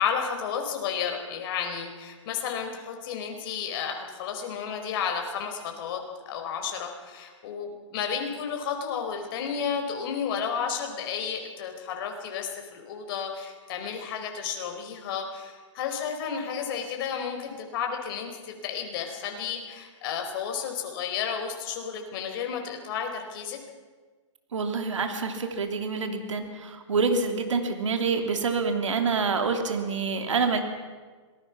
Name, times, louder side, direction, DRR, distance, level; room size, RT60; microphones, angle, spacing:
voice 1, 0.0-23.6, left 7 dB, 45° left, 4 dB, 4.5 m, -32 dB
voice 2, 24.5-30.6, right 4 dB, 75° right, 5 dB, 3.0 m, -27 dB
26.0 x 19.5 x 6.0 m, 1.5 s
hypercardioid pair, 130°, 16 cm